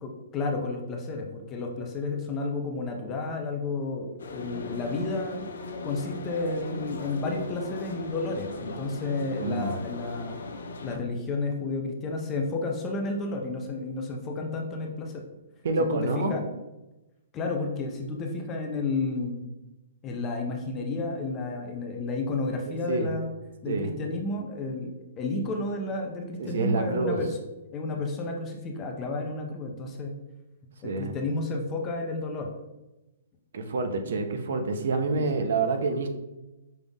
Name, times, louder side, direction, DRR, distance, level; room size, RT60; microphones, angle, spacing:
voice 1, 0.0-5.5 5.8-10.4 10.8-15.2 15.9-16.4 17.3-19.4 20.0-23.3 23.6-27.4 27.7-30.1 30.8-32.5 35.1-35.5, left 3 dB, 15° left, 2 dB, 0.3 m, -31 dB
sound 1, 4.2-11.0, left 3 dB, 80° left, 0.5 m, -38 dB
voice 2, 9.4-9.8 15.6-16.4 22.9-23.1 23.7-23.9 26.4-27.2 30.8-31.1 33.5-36.1, right 3 dB, 55° right, 7 dB, 0.5 m, -27 dB
5.4 x 2.4 x 3.4 m, 1.0 s
hypercardioid pair, 180°, 0 cm